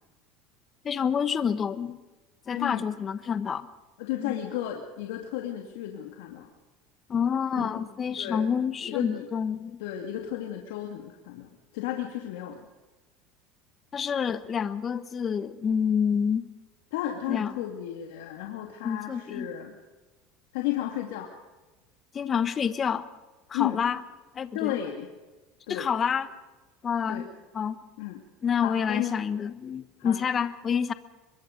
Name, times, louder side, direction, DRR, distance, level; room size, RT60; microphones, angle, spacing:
voice 1, 0.8-2.0 2.5-3.7 4.2-4.4 7.1-9.8 13.9-16.5 17.3-17.5 18.8-19.5 22.1-23.1 23.5-24.0 24.3-24.8 25.7-26.3 26.8-27.3 27.5-27.8 28.4-30.9, left 7 dB, 25° left, 13 dB, 1.2 m, -28 dB
voice 2, 4.0-6.5 7.6-7.7 8.2-8.5 8.9-9.3 9.8-12.7 16.9-19.7 20.5-21.3 23.5-23.8 24.5-25.1 25.7-25.9 27.1-27.3 28.0-28.2 28.6-29.2 30.0-30.2, left 12 dB, 80° left, 2 dB, 2.5 m, -33 dB
24.0 x 22.5 x 5.3 m, 1.2 s
supercardioid pair, 135°, 0 cm